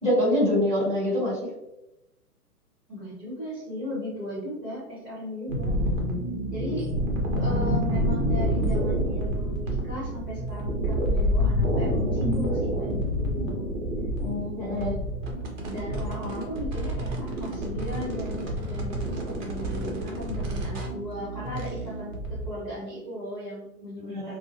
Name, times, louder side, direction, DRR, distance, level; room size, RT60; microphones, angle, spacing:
voice 1, 0.0-1.4 6.7-6.8 14.2-15.0 24.1-24.4, left 1 dB, 15° left, -9 dB, 1.4 m, -25 dB
voice 2, 2.9-5.8 6.5-6.9 7.3-13.7 14.6-15.0 15.6-24.4, equal, 20° right, -10 dB, 1.2 m, -37 dB
sound 1, 5.5-22.5, equal, 50° right, 0.8 m, -28 dB
2.6 x 2.1 x 2.8 m, 0.93 s
hypercardioid pair, 135°, 47 cm